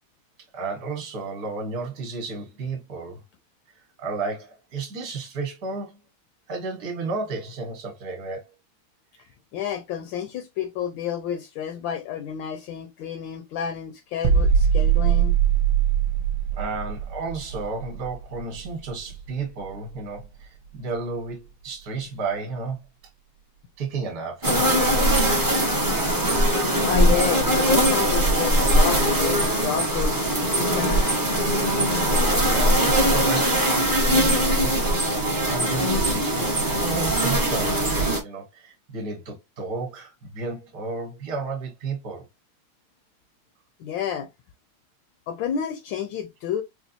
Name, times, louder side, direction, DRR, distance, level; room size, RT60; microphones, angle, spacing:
voice 1, 0.5-3.2 4.0-6.0 6.5-8.5 16.6-22.8 23.8-24.7 32.5-33.8 34.1-34.7 35.5-42.2, right 4 dB, 55° right, 1.5 m, -32 dB
voice 2, 9.5-15.4 26.5-31.2 43.8-44.3 45.3-46.6, left 9 dB, 75° left, 1.2 m, -30 dB
sound 1, 14.2-19.9 20.2-20.4, right 8 dB, 75° right, 1.1 m, -22 dB
sound 2, 24.4-38.2, right 1 dB, 30° right, 0.3 m, -21 dB
4.3 x 2.3 x 2.5 m
omnidirectional pair, 2.2 m